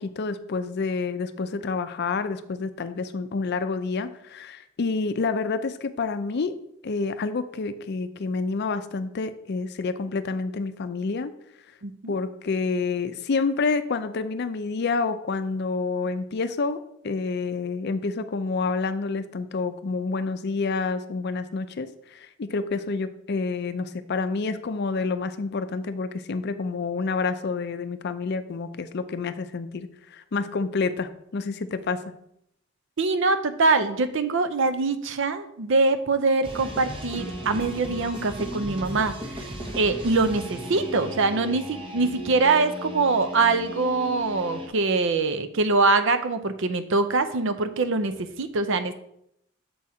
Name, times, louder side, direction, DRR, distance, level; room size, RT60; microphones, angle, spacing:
voice 1, 0.0-6.5 6.8-11.3 12.1-32.0, left 4 dB, 50° left, 11 dB, 0.5 m, -28 dB
voice 2, 11.8-12.1 33.0-48.9, right 3 dB, 65° right, 11 dB, 0.6 m, -24 dB
sound 1, 36.4-44.7, equal, 25° right, 0.9 m, -36 dB
7.0 x 4.3 x 4.8 m, 0.76 s
head